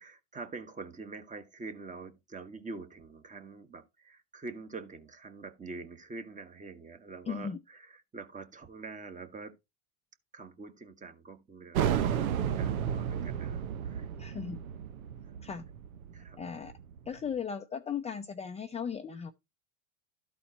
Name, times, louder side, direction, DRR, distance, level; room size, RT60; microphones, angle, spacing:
voice 1, 0.0-9.6 10.3-12.0 12.3-14.1 16.1-16.4, right 3 dB, 20° right, 1.2 m, -45 dB
voice 2, 7.3-7.6 14.2-14.6 15.4-15.6 16.4-16.7 17.1-19.3, left 7 dB, 15° left, 0.5 m, -37 dB
sound 1, 11.7-17.1, right 9 dB, 90° right, 0.8 m, -32 dB
12.5 x 4.3 x 4.2 m
supercardioid pair, 105°, 41 cm